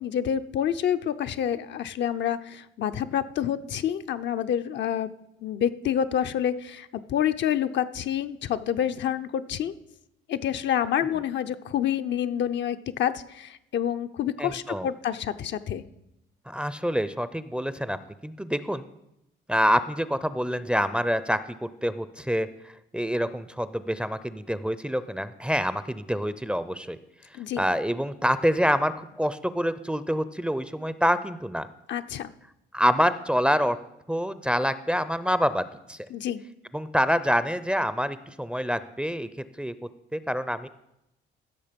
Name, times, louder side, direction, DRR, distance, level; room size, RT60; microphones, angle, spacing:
voice 1, 0.0-5.1 5.4-9.7 10.3-15.8 27.3-27.6 31.9-32.3 36.1-36.4, left 9 dB, 65° left, 9 dB, 0.6 m, -28 dB
voice 2, 14.4-14.9 16.5-18.8 19.5-27.0 27.6-31.7 32.7-33.8 34.1-36.0 36.7-39.7 40.1-40.7, equal, 5° right, 13 dB, 0.5 m, -26 dB
15.5 x 6.4 x 5.2 m, 0.85 s
cardioid pair, 90°, 20 cm